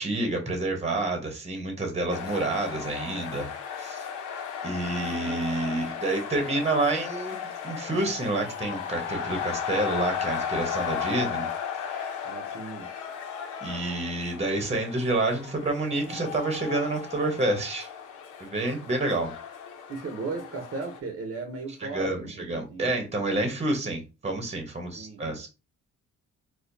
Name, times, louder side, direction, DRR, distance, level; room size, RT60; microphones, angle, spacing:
voice 1, 0.0-3.5 3.8-4.0 4.6-7.4 7.6-11.5 11.8-12.3 13.6-17.9 18.4-19.3 21.8-25.5, right 2 dB, 20° right, 4 dB, 1.0 m, -28 dB
sound 1, 2.1-21.0, left 7 dB, 80° left, 0.8 m, -35 dB
voice 2, 5.0-5.7 12.2-13.2 16.1-16.2 19.9-22.4 22.7-23.0 25.0-25.2, right 3 dB, 45° right, 3 dB, 0.8 m, -37 dB
4.2 x 2.3 x 2.6 m, 0.29 s
cardioid pair, 90°, 30 cm